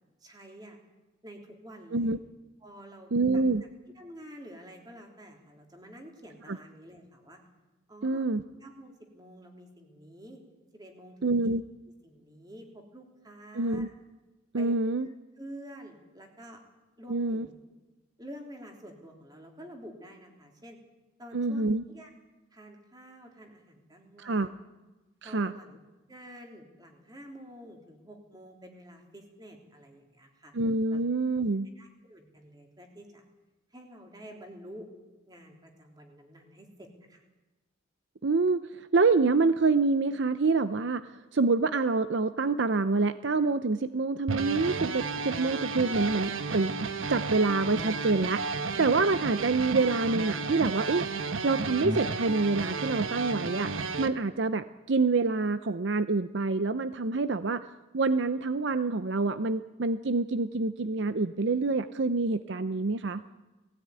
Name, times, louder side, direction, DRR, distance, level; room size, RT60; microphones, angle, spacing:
voice 1, 0.2-0.8 1.2-2.2 2.6-3.4 3.9-7.4 7.9-8.3 8.6-10.4 10.7-11.3 12.0-13.9 14.5-14.8 15.0-16.6 17.0-17.5 18.2-20.8 21.2-22.1 22.5-24.7 25.2-25.8 26.1-30.5 30.9-31.0 31.7-33.2 33.7-34.9 35.3-37.2, equal, 20° right, 2 dB, 3.3 m, -49 dB
voice 2, 3.1-3.6 6.5-6.6 8.0-8.4 11.2-11.6 13.5-13.9 14.5-15.1 17.1-17.5 21.3-21.8 24.2-24.5 25.2-25.5 30.5-31.7 38.2-46.7 47.1-48.4 48.8-51.1 51.4-53.7 54.0-57.7 57.9-63.2, right 3 dB, 60° right, 12 dB, 0.6 m, -26 dB
sound 1, 44.3-54.1, right 4 dB, 80° right, 1.2 m, -33 dB
19.5 x 16.5 x 9.6 m, 1.1 s
head